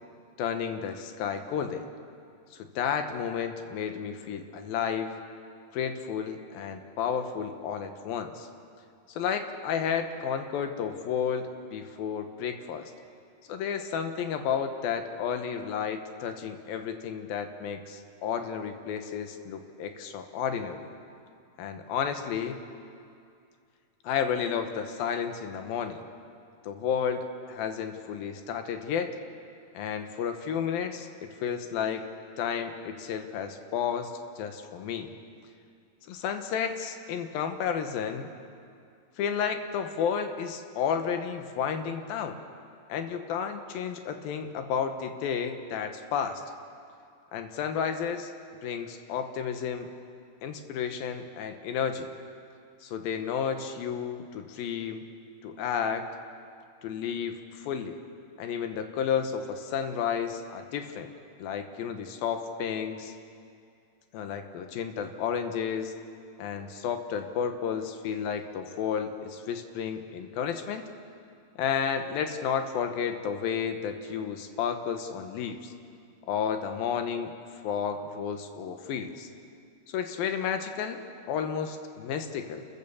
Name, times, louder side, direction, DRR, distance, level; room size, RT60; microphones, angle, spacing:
voice 1, 0.4-1.9 2.5-5.1 5.7-8.5 9.2-12.9 13.5-20.9 21.6-22.6 24.0-26.0 26.6-29.1 29.7-32.1 32.4-34.1 34.4-35.1 36.1-38.3 39.2-42.4 42.9-46.4 47.3-48.3 48.6-49.9 50.4-52.1 52.8-55.0 55.4-56.1 56.8-58.0 58.4-61.1 61.4-63.1 64.1-65.9 66.4-70.8 71.6-75.7 76.3-77.3 77.6-79.3 79.9-82.7, left 7 dB, 80° left, 7 dB, 3.0 m, -32 dB
28.5 x 15.0 x 7.1 m, 2.4 s
omnidirectional pair, 4.1 m